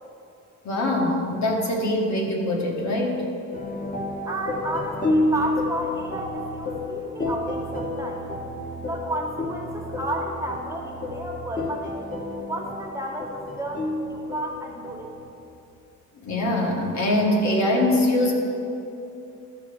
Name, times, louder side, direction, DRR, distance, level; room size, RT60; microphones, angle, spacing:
voice 1, 0.6-3.3 16.2-18.3, left 1 dB, 65° left, 0 dB, 1.7 m, -23 dB
sound 1, 3.5-15.3, left 1 dB, 25° left, 1.2 m, -30 dB
voice 2, 4.2-8.2 8.8-12.0 12.5-15.1, right 1 dB, 10° right, -1 dB, 1.5 m, -32 dB
14.0 x 5.1 x 5.1 m, 2.7 s
cardioid pair, 90°, 30 cm